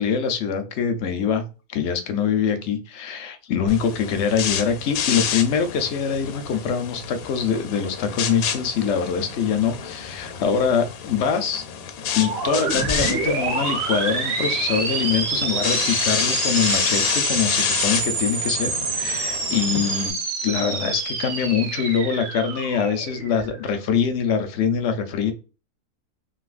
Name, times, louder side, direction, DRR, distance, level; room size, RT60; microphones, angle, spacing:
voice 1, 0.0-1.4 1.7-11.6 12.1-20.1 20.4-25.3, left 7 dB, 65° left, 7 dB, 0.8 m, -24 dB
sound 1, 3.7-20.1, left 8 dB, 90° left, 1.0 m, -29 dB
sound 2, 12.1-23.8, right 4 dB, 70° right, 1.1 m, -27 dB
3.2 x 2.7 x 2.4 m, 0.33 s
omnidirectional pair, 1.4 m